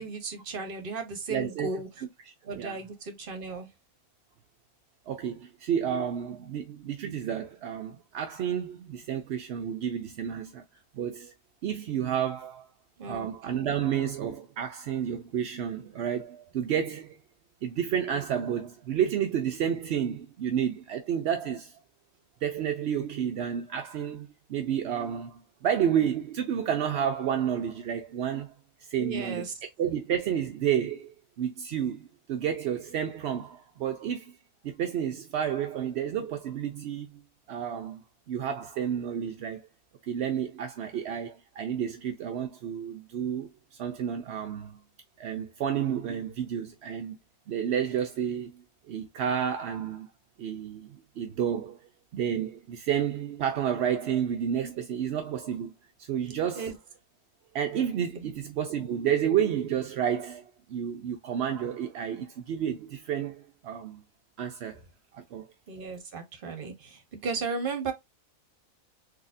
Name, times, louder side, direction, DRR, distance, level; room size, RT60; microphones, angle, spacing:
voice 1, 0.0-1.9 2.4-3.7 13.0-13.3 13.6-13.8 29.0-29.5 56.5-56.7 58.2-58.3 65.7-67.9, right 4 dB, 45° right, 0.9 m, -35 dB
voice 2, 1.3-2.1 2.5-2.8 5.1-10.6 10.9-11.3 11.6-12.7 13.1-17.2 17.6-21.8 22.4-28.5 28.8-29.5 29.8-34.4 34.6-37.2 37.5-39.7 40.0-43.5 43.8-44.8 45.2-47.2 47.5-50.1 50.4-51.9 52.1-55.7 56.0-56.7 57.5-64.0 64.4-64.8 65.1-65.5, right 9 dB, 65° right, 0.6 m, -30 dB
4.0 x 2.8 x 2.5 m
omnidirectional pair, 1.5 m